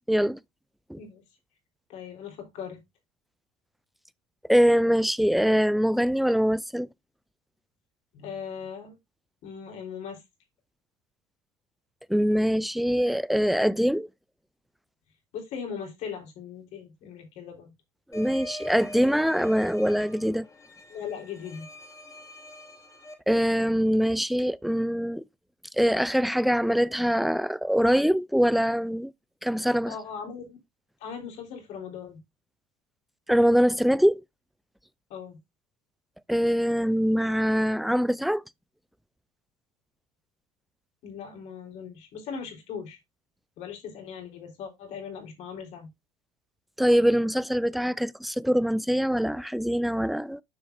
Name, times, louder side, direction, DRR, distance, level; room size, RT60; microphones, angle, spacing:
voice 1, 0.1-0.4 0.9-1.0 4.5-6.9 12.1-14.1 18.1-20.5 23.3-25.2 25.8-29.1 29.4-29.9 33.3-34.2 36.3-38.4 46.8-50.4, equal, ahead, 0.3 m, -23 dB
voice 2, 1.9-2.8 8.1-9.0 9.4-10.2 15.3-17.7 20.9-21.7 29.9-30.6 31.0-32.2 35.1-35.4 41.0-43.0 43.6-45.9, left 7 dB, 65° left, 3.5 m, -39 dB
sound 1, 18.1-23.1, left 1 dB, 25° left, 2.7 m, -43 dB
9.8 x 6.1 x 2.5 m
supercardioid pair, 95°, 13 cm